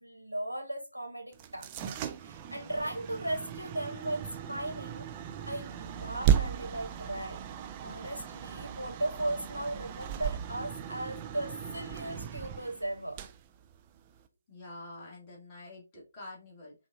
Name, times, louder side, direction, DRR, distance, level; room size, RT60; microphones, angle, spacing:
voice 1, 0.0-5.1 5.5-7.4 7.8-13.2, right 1 dB, 90° left, 0.9 m, -37 dB
sound 1, 1.3-14.3, right 9 dB, 20° right, 0.3 m, -36 dB
voice 2, 14.5-16.7, left 2 dB, 20° left, 1.6 m, -47 dB
5.3 x 2.4 x 2.5 m
figure-of-eight pair, 140°, 0 cm